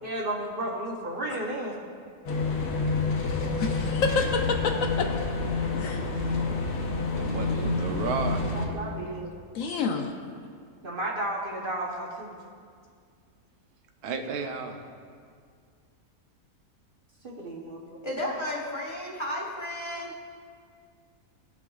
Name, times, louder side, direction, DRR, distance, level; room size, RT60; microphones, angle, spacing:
voice 1, 0.0-1.8 8.3-9.3 10.8-12.3 17.2-18.0, right 1 dB, 45° right, -3 dB, 0.9 m, -33 dB
sound 1, 2.3-8.7, left 3 dB, 85° left, 1.5 m, -28 dB
voice 2, 3.6-5.1 5.8-6.0 9.5-10.1, left 4 dB, 70° left, 4 dB, 0.9 m, -28 dB
voice 3, 7.1-9.2 14.0-14.8, right 4 dB, 85° right, 5 dB, 1.2 m, -33 dB
voice 4, 18.0-20.1, left 1 dB, 20° left, -4 dB, 1.1 m, -33 dB
16.5 x 6.0 x 2.3 m, 2.1 s
omnidirectional pair, 1.6 m